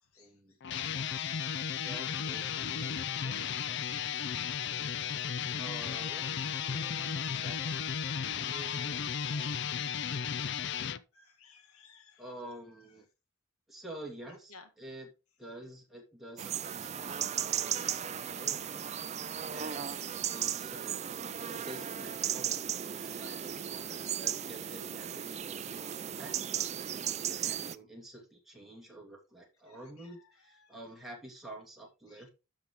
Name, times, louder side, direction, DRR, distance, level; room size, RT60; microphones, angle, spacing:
voice 1, 0.2-0.6 1.8-3.9 5.5-7.8 8.2-9.6 12.2-13.1 13.7-15.1 15.4-18.8 19.5-32.3, right 1 dB, ahead, 2.5 m, -49 dB
sound 1, 0.6-11.0, left 7 dB, 50° left, 0.5 m, -34 dB
voice 2, 11.1-12.2 14.5-14.6 20.2-20.4 23.0-23.5 23.9-24.1 29.7-30.1 30.6-30.7 32.1-32.2, left 5 dB, 75° left, 2.1 m, -59 dB
sound 2, 16.4-27.7, right 9 dB, 30° right, 0.4 m, -36 dB
13.0 x 5.5 x 3.1 m
head